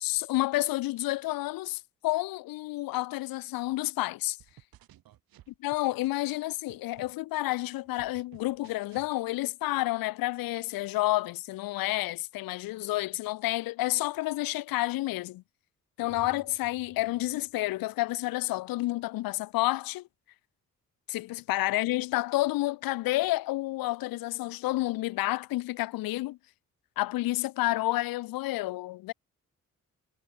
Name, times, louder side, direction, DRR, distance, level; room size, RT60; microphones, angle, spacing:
voice 1, 0.0-4.4 5.6-15.4 16.0-20.1 21.1-26.4 27.0-29.1, left 18 dB, 70° left, 0.5 m, -30 dB
sound 1, 4.4-6.4 6.7-9.1, right 13 dB, 70° right, 1.0 m, -55 dB
sound 2, 16.0-18.1, right 3 dB, 30° right, 4.1 m, -54 dB
supercardioid pair, 45°, 36 cm